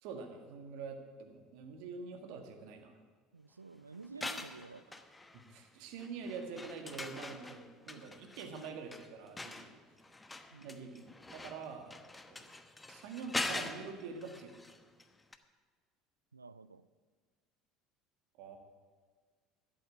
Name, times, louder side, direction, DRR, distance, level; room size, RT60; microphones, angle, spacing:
voice 1, 0.0-2.9 5.3-9.8 10.6-12.0 12.3-12.5 12.9-14.6 18.4-18.6, right 5 dB, 60° right, 5 dB, 1.8 m, -45 dB
voice 2, 3.3-5.0 10.5-11.0 16.3-16.9, right 4 dB, 85° right, 16 dB, 0.4 m, -51 dB
sound 1, 4.0-5.7 6.0-15.0 15.3-15.4, left 2 dB, 15° left, 1.0 m, -43 dB
11.5 x 8.6 x 8.5 m, 1.5 s
figure-of-eight pair, 65°, 0 cm